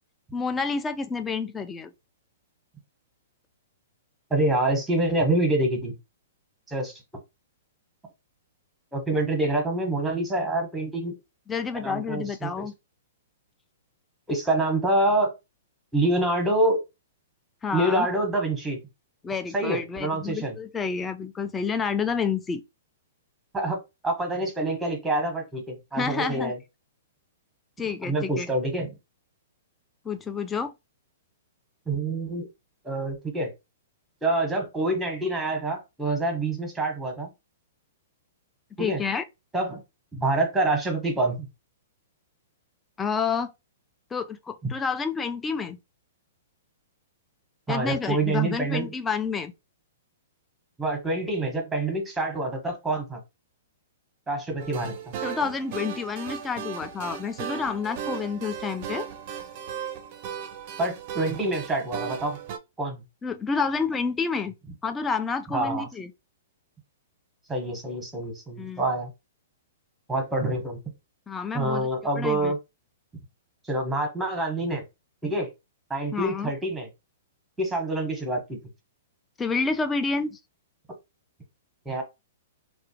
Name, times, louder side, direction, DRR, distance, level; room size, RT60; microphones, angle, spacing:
voice 1, 0.3-1.9 11.5-12.7 17.6-18.1 19.2-22.6 25.9-26.5 27.8-28.5 30.1-30.7 38.8-39.2 43.0-43.5 44.1-45.8 47.7-49.5 55.2-59.1 63.2-64.5 64.8-66.1 68.6-68.8 71.3-71.9 72.2-72.5 76.1-76.5 79.4-80.4, left 5 dB, 15° left, 0.3 m, -29 dB
voice 2, 4.3-6.0 6.7-7.0 8.9-11.1 11.7-12.7 14.3-15.3 15.9-16.8 17.7-18.8 19.5-20.6 23.5-26.6 28.0-28.9 31.9-32.5 32.8-33.5 34.2-37.3 38.8-39.0 39.5-39.8 40.1-41.5 47.7-48.9 50.8-53.2 54.3-54.9 60.8-62.4 62.8-63.0 65.5-65.9 67.5-69.1 70.1-70.8 71.5-72.6 73.6-74.8 75.2-75.5 75.9-76.9 77.6-78.6 81.8-82.0, right 2 dB, 5° right, 0.9 m, -26 dB
sound 1, 54.6-62.6, right 8 dB, 45° right, 0.4 m, -36 dB
2.4 x 2.1 x 2.7 m
hypercardioid pair, 120°, 0 cm